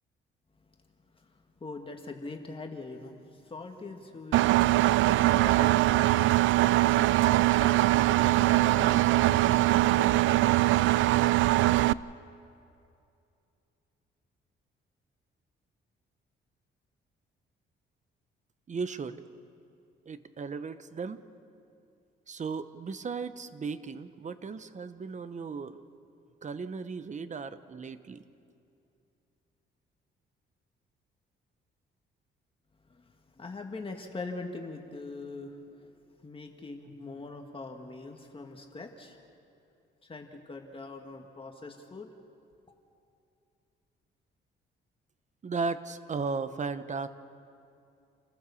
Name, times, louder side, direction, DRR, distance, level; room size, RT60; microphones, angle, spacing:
voice 1, 0.8-6.5 7.2-10.4 32.8-35.9 36.2-39.2 40.0-42.1, left 3 dB, 25° left, 3 dB, 1.9 m, -43 dB
Engine, 4.3-11.9, right 16 dB, 80° right, 0.4 m, -22 dB
voice 2, 18.7-19.2 20.1-21.2 22.3-25.8 26.4-28.2 45.4-47.1, right 4 dB, 35° right, 12 dB, 1.0 m, -36 dB
28.5 x 15.0 x 7.1 m, 2.6 s
cardioid pair, 90°, 20 cm